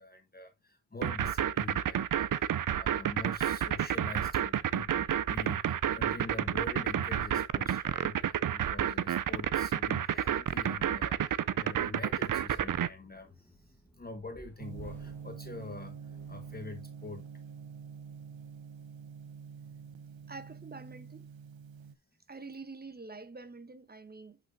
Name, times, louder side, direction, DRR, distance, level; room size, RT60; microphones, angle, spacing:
voice 1, 0.0-17.2, left 3 dB, 20° left, 1.0 m, -45 dB
sound 1, 1.0-12.9, right 10 dB, 45° right, 0.5 m, -30 dB
sound 2, 12.5-17.3 17.9-18.2 18.5-18.7 19.2-19.3, right 1 dB, 5° left, 1.2 m, -57 dB
Gong, 14.6-21.9, right 6 dB, 75° right, 0.9 m, -46 dB
voice 2, 20.3-21.3 22.3-24.4, right 3 dB, 20° right, 0.9 m, -46 dB
8.7 x 5.9 x 2.6 m
wide cardioid pair, 135°, 46 cm